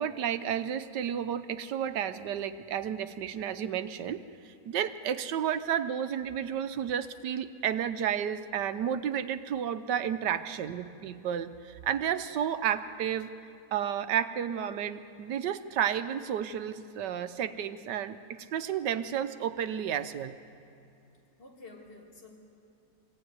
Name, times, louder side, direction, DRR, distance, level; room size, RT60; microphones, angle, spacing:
voice 1, 0.0-13.3 13.7-20.4, right 9 dB, 80° right, 12 dB, 1.4 m, -32 dB
voice 2, 21.4-22.4, left 3 dB, 85° left, -2 dB, 3.9 m, -50 dB
23.5 x 16.5 x 9.6 m, 2.6 s
omnidirectional pair, 1.8 m